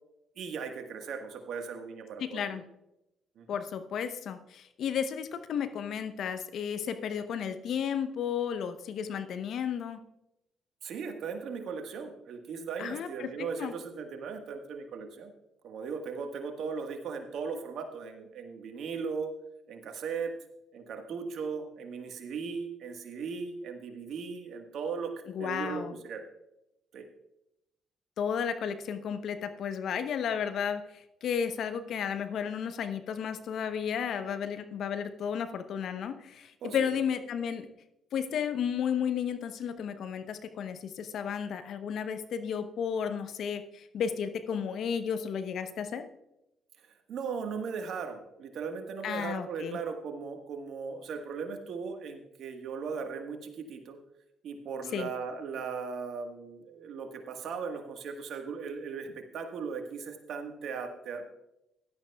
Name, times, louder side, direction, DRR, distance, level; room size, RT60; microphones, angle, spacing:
voice 1, 0.4-2.6 3.4-3.6 10.8-15.3 15.6-19.3 19.7-20.3 20.7-25.1 25.4-26.2 26.9-27.1 36.6-36.8 47.1-54.0 54.4-61.2, right 5 dB, 65° right, 6 dB, 1.4 m, -38 dB
voice 2, 2.2-2.6 3.5-10.0 12.8-13.7 25.3-25.9 28.2-37.7 38.1-46.1 49.0-49.8 54.9-55.1, left 7 dB, 65° left, 10 dB, 0.8 m, -33 dB
16.0 x 11.5 x 2.3 m, 0.89 s
hypercardioid pair, 50°, 0 cm